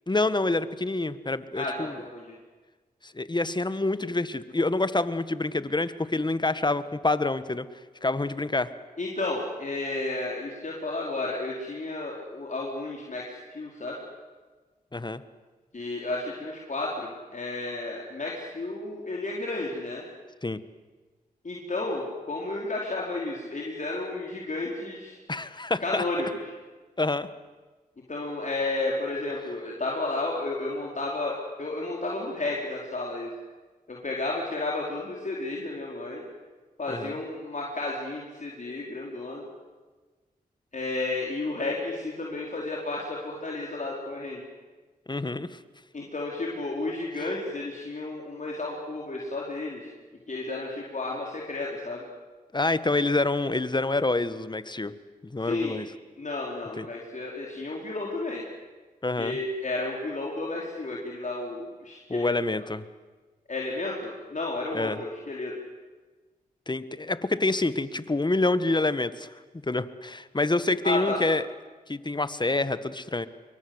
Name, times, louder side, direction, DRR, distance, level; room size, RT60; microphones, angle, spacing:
voice 1, 0.1-2.0 3.0-7.7 8.0-8.7 14.9-15.2 20.4-20.6 25.3-26.0 27.0-27.3 36.9-37.1 45.1-45.6 47.2-47.3 52.5-54.9 55.2-55.9 56.7-56.9 59.0-59.4 62.1-62.8 64.7-65.0 66.7-69.3 69.7-71.4 71.9-73.3, left 2 dB, 25° left, 13 dB, 1.6 m, -27 dB
voice 2, 1.6-2.3 9.0-14.0 15.7-20.0 21.4-25.2 25.8-26.3 28.1-33.3 33.9-36.2 36.8-39.4 40.7-44.4 45.9-49.9 50.3-52.0 55.4-55.8 56.2-58.4 59.2-62.3 63.5-65.5 70.8-71.2, left 2 dB, 50° left, -2 dB, 4.9 m, -32 dB
27.0 x 23.0 x 8.1 m, 1.3 s
cardioid pair, 45°, 16 cm